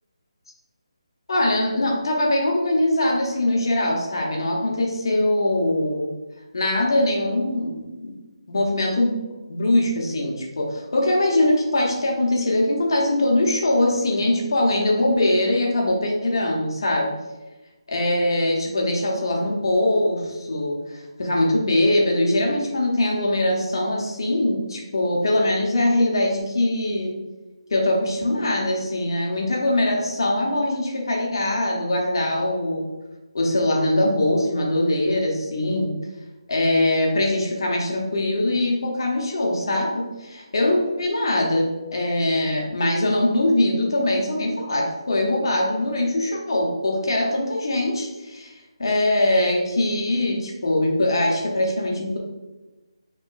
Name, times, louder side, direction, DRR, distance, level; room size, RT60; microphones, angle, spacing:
voice 1, 1.3-6.1 6.5-8.1 8.5-9.2 9.5-17.1 17.9-27.1 27.7-32.8 33.3-36.0 36.5-52.2, left 1 dB, 50° left, -1 dB, 0.8 m, -22 dB
4.8 x 2.9 x 2.4 m, 1.1 s
hypercardioid pair, 175°, 3 cm